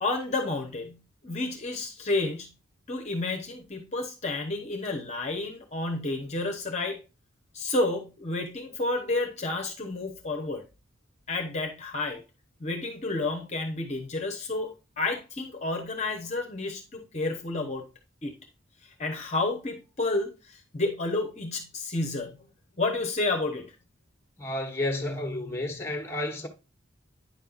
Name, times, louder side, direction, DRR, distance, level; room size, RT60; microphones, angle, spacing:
voice 1, 0.0-2.5 2.9-7.0 7.5-10.6 11.3-12.2 12.6-17.9 18.2-18.3 18.8-22.4 22.8-23.7, left 2 dB, 35° left, 0.9 m, -30 dB
voice 2, 24.4-26.5, left 1 dB, 15° left, 1.2 m, -31 dB
9.4 x 5.5 x 2.5 m
head